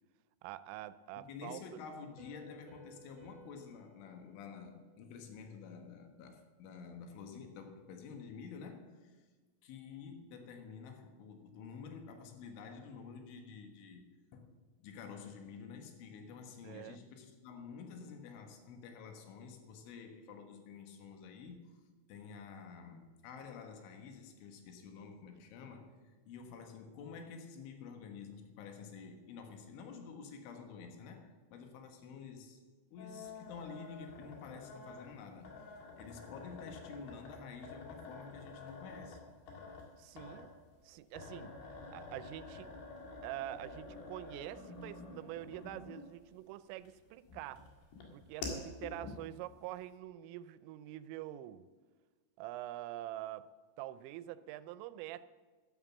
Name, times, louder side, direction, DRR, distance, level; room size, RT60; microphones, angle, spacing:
voice 1, 0.4-1.6 16.6-17.0 40.0-40.5 40.8-41.5 41.9-42.7 43.2-47.6 48.1-51.7 52.4-53.5 53.8-55.3, right 14 dB, 90° right, 15 dB, 3.2 m, -45 dB
voice 2, 1.2-9.2 9.6-14.0 14.3-14.5 14.8-21.8 22.1-32.6 32.9-35.7 36.0-39.2, left 5 dB, 75° left, 5 dB, 3.8 m, -50 dB
Piano, 2.2-5.6, right 5 dB, 35° right, 2.3 m, -61 dB
sound 1, 33.0-46.3 46.8-49.5, left 3 dB, 60° left, 3.9 m, -48 dB
12.5 x 11.0 x 7.2 m, 1.4 s
omnidirectional pair, 5.7 m